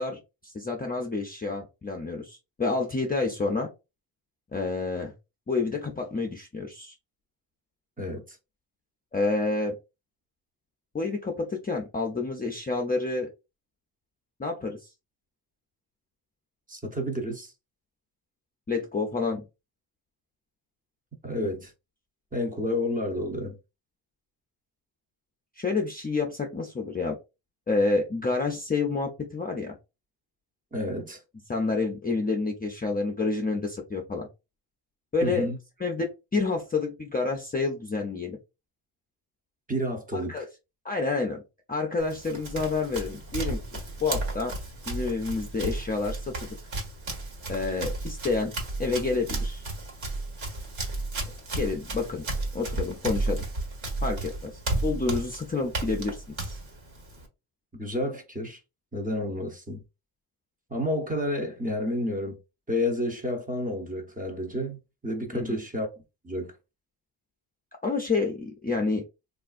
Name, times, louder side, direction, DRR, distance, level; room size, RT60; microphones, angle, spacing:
voice 1, 0.0-3.7 4.5-5.1 5.5-6.9 9.1-9.8 10.9-13.3 14.4-14.9 18.7-19.4 25.6-27.2 27.7-29.8 31.5-34.3 35.1-35.5 35.8-38.4 40.1-40.5 40.8-41.4 41.7-44.6 44.9-46.5 47.5-48.5 48.8-49.6 51.6-52.2 52.5-53.4 54.0-56.6 65.3-65.6 67.8-69.0, left 3 dB, 20° left, 0.4 m, -29 dB
voice 2, 8.0-8.4 16.7-17.5 21.2-21.7 22.3-23.6 30.7-31.2 35.2-35.6 39.7-40.4 57.8-58.6 58.9-59.8 60.7-62.4 62.7-65.9 66.2-66.5, left 1 dB, 20° right, 0.8 m, -30 dB
Run, 42.0-57.3, right 2 dB, 75° right, 1.4 m, -33 dB
3.4 x 2.4 x 2.4 m
cardioid pair, 120°, 47 cm